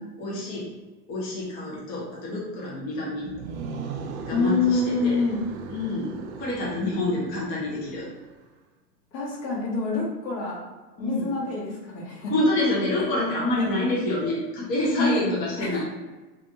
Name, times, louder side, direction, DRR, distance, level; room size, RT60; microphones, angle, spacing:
voice 1, 0.2-0.7 1.1-3.3 4.3-5.2 5.7-8.1 11.0-11.3 12.3-15.8, left 1 dB, 20° left, -5 dB, 0.7 m, -27 dB
sound 1, 3.2-8.3, right 5 dB, 45° right, 0.5 m, -38 dB
voice 2, 4.3-5.4 9.1-10.6 11.0-12.3 13.5-13.7 15.0-15.2 15.6-15.8, left 3 dB, 45° left, -3 dB, 1.5 m, -26 dB
5.0 x 2.5 x 2.7 m, 1.2 s
hypercardioid pair, 135°, 49 cm